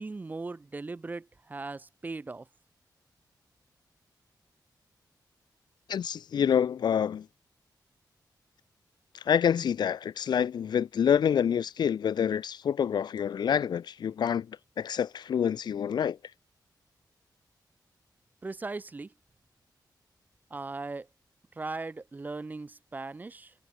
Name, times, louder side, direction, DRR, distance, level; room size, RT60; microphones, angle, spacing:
voice 1, 0.0-2.5 18.4-19.1 20.5-21.1 21.6-23.5, right 3 dB, 25° right, 0.9 m, -38 dB
voice 2, 5.9-7.2 9.3-14.5 14.8-16.2, left 8 dB, 75° left, 0.5 m, -27 dB
wide cardioid pair, 175°, 7 cm